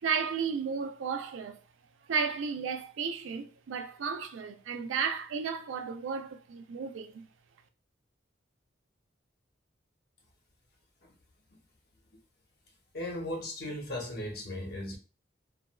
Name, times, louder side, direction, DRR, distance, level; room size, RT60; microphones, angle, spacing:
voice 1, 0.0-1.6 2.1-7.3, right 5 dB, 80° right, 0.4 m, -33 dB
voice 2, 12.9-15.0, left 1 dB, 55° left, 0.8 m, -37 dB
3.0 x 2.4 x 2.2 m
head